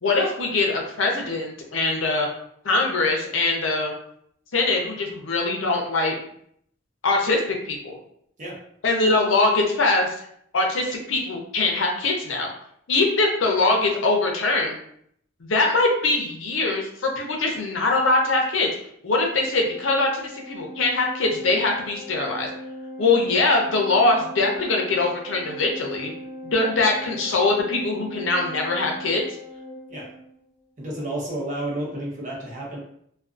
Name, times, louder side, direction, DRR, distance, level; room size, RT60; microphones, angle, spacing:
voice 1, 0.0-2.3 2.6-3.9 4.5-6.1 7.0-8.0 8.8-10.1 10.5-12.5 12.9-14.8 15.5-18.7 19.0-22.5 23.0-26.1 26.4-29.2, left 3 dB, 80° left, 1 dB, 0.6 m, -22 dB
Organ, 19.6-30.4, left 1 dB, 25° right, 0.4 m, -39 dB
voice 2, 30.8-32.8, right 1 dB, 40° right, -3 dB, 0.8 m, -31 dB
2.4 x 2.3 x 2.4 m, 0.68 s
head